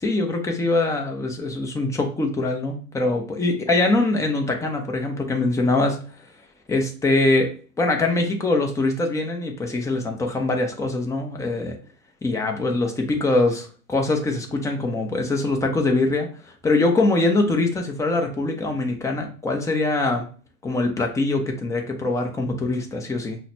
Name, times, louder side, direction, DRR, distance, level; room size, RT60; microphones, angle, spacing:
voice 1, 0.0-6.0 6.7-7.5 7.8-11.8 12.2-16.3 16.6-20.3 20.6-23.4, left 2 dB, 5° left, 2 dB, 0.4 m, -23 dB
5.6 x 2.1 x 2.6 m, 0.40 s
hypercardioid pair, 110°, 46 cm